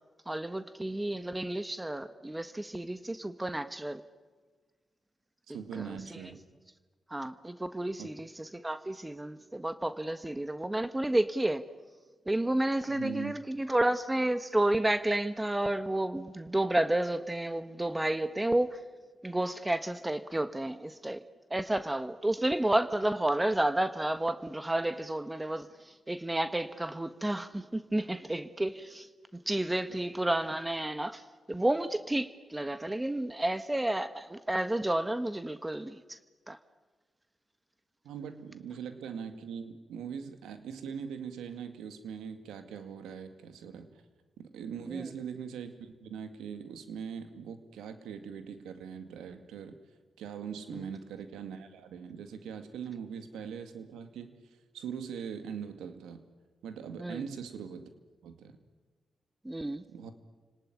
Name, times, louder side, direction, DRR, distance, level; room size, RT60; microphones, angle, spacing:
voice 1, 0.3-4.0 5.8-5.9 7.1-11.6 12.3-18.8 19.2-21.2 21.5-25.7 26.1-29.1 29.5-31.2 31.5-36.0 36.5-36.6 44.9-45.0 50.7-50.9 57.0-57.2 59.4-59.8, right 1 dB, 15° right, 1.4 m, -31 dB
voice 2, 5.5-6.4 8.0-8.1 12.9-13.3 29.9-30.0 38.0-43.9 44.4-49.8 50.2-54.4 54.7-56.2 56.6-57.9 58.2-58.6 59.9-60.1, right 7 dB, 85° right, 2.1 m, -41 dB
29.0 x 19.0 x 9.9 m
supercardioid pair, 45°, 0 cm